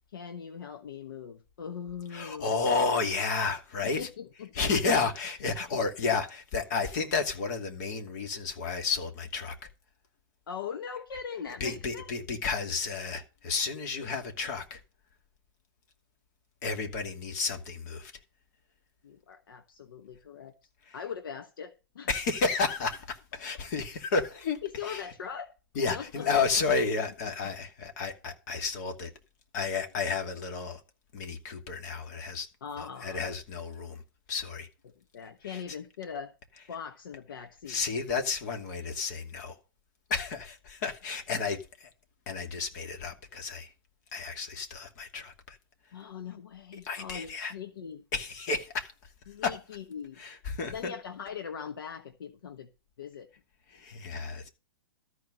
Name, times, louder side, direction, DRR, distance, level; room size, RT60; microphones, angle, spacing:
voice 1, 0.1-2.5 3.8-4.5 10.5-12.1 19.0-22.1 24.6-25.5 25.9-26.4 32.6-33.2 34.8-36.3 36.7-37.8 45.9-48.1 49.3-50.2 50.7-52.7 53.0-53.3, left 7 dB, 65° left, 1.1 m, -41 dB
voice 2, 2.1-4.1 4.5-9.6 11.6-14.8 16.6-18.1 20.9-21.0 22.1-25.0 25.7-29.1 29.5-30.8 31.1-32.5 32.8-34.0 34.3-34.7 35.4-35.6 37.7-39.6 40.1-41.9 42.3-43.7 44.1-45.6 46.8-47.5 48.1-48.9 49.4-49.6 50.2-50.9 53.7-54.5, left 4 dB, 50° left, 2.5 m, -31 dB
13.5 x 4.8 x 6.7 m
hypercardioid pair, 120°, 12 cm